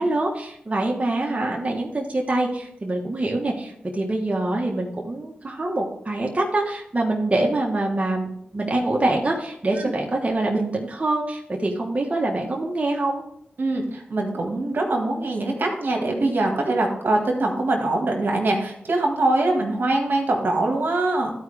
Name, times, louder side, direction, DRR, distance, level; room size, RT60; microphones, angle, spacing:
voice 1, 0.0-13.2, right 2 dB, 35° right, -1 dB, 1.4 m, -25 dB
voice 2, 13.6-21.3, right 2 dB, 65° right, 1 dB, 1.8 m, -23 dB
12.0 x 4.8 x 3.4 m, 0.71 s
cardioid pair, 45°, 4 cm